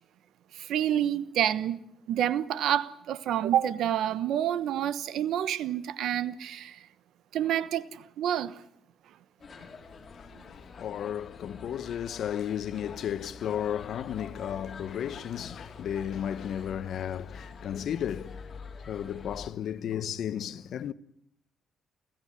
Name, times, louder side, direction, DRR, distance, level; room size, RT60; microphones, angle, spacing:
voice 1, 0.5-1.8 2.1-6.8 7.3-8.6, right 11 dB, 80° right, 1.1 m, -28 dB
sound 1, 9.4-19.5, left 5 dB, 40° left, 3.3 m, -46 dB
voice 2, 10.1-20.9, left 9 dB, 70° left, 0.9 m, -34 dB
29.5 x 14.0 x 9.7 m
cardioid pair, 90°, 0 cm